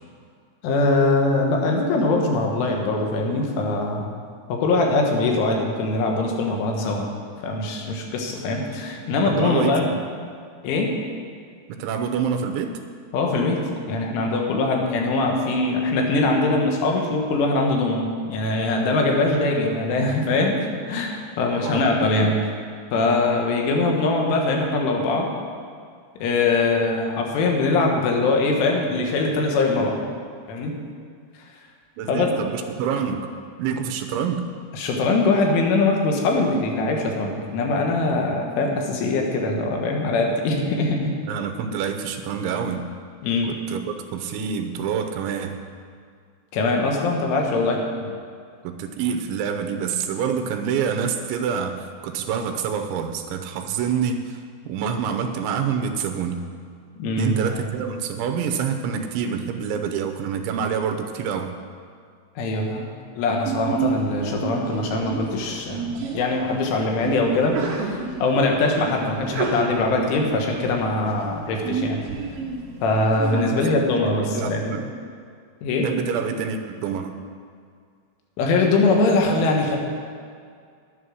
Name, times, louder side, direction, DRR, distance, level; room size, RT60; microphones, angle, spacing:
voice 1, 0.6-4.1 4.5-7.1 7.4-9.9 10.6-11.0 13.1-20.6 20.9-22.4 22.9-25.3 26.2-30.0 30.5-30.7 32.1-32.3 34.7-41.1 43.2-43.5 46.5-47.8 57.0-57.6 62.4-62.9 63.2-72.0 72.8-74.8 75.6-75.9 78.4-79.8, left 2 dB, 85° left, 1 dB, 4.0 m, -22 dB
voice 2, 9.1-10.1 11.7-12.8 21.6-21.9 32.0-33.3 33.6-34.5 41.3-42.9 43.4-45.6 48.0-48.1 48.6-56.5 57.2-61.6 73.5-73.7 74.1-74.9 75.8-77.1, right 7 dB, 80° right, 6 dB, 3.1 m, -27 dB
Sneeze, 63.4-73.4, right 4 dB, 65° right, 2.3 m, -30 dB
11.5 x 11.0 x 6.4 m, 2.2 s
omnidirectional pair, 5.5 m